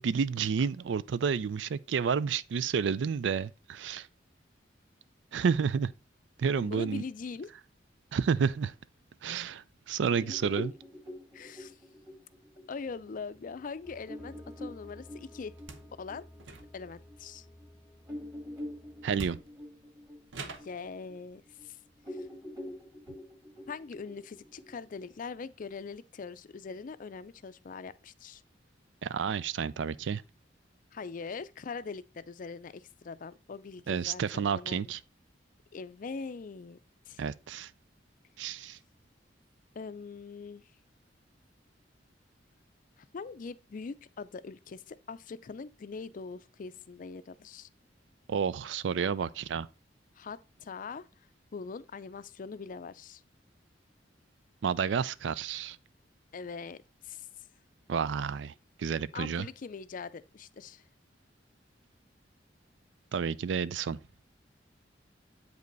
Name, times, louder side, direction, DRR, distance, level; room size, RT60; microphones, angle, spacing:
voice 1, 0.0-4.1 5.3-5.9 6.4-7.0 8.1-8.7 9.2-10.7 19.0-19.4 29.0-30.2 33.9-35.0 37.2-37.7 38.4-38.8 48.3-49.7 54.6-55.8 57.9-58.5 58.8-59.5 63.1-64.0, right 6 dB, 75° right, 0.4 m, -30 dB
voice 2, 6.6-7.5 10.2-10.3 11.3-11.8 12.7-15.5 16.0-16.3 16.7-17.5 20.4-21.8 22.1-22.3 23.7-28.4 30.9-34.9 35.7-36.8 37.1-37.2 39.7-40.7 43.0-47.7 50.2-51.1 51.5-53.2 56.3-57.3 59.1-60.9, left 5 dB, 45° left, 0.4 m, -42 dB
sound 1, 10.1-17.2 17.6-17.7 18.1-21.7 22.0-25.1, left 1 dB, 20° right, 2.0 m, -45 dB
sound 2, 12.8-19.2, left 1 dB, 5° left, 0.7 m, -55 dB
sound 3, 15.6-15.9 16.4-17.0 18.6-18.7 19.1-19.7 20.3-20.8, right 3 dB, 90° right, 0.9 m, -44 dB
8.1 x 5.3 x 3.9 m
head